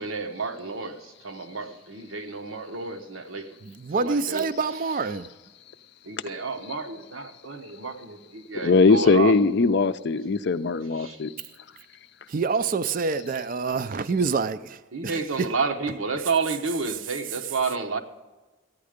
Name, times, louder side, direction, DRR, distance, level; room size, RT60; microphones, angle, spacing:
voice 1, 0.0-3.6 3.9-4.5 6.0-9.4 11.0-11.2 14.9-18.0, right 4 dB, 90° right, 1.1 m, -30 dB
voice 2, 3.7-5.3 12.3-15.5, right 4 dB, 45° right, 0.4 m, -27 dB
voice 3, 8.6-11.3, left 4 dB, 55° left, 0.5 m, -20 dB
15.5 x 9.5 x 5.0 m
head